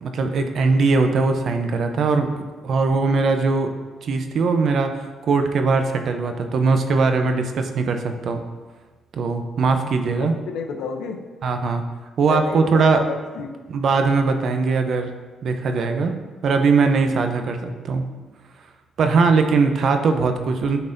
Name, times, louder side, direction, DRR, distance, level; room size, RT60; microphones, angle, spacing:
voice 1, 0.0-2.3 2.6-3.7 4.0-8.4 9.1-10.3 11.4-11.8 12.2-13.0 13.7-15.1 15.4-16.1 16.4-18.0 19.0-20.8, right 4 dB, 60° right, 6 dB, 0.6 m, -20 dB
voice 2, 10.2-11.3 12.3-13.5, left 5 dB, 85° left, 5 dB, 0.6 m, -30 dB
11.0 x 4.0 x 2.7 m, 1.3 s
cardioid pair, 90°, 0 cm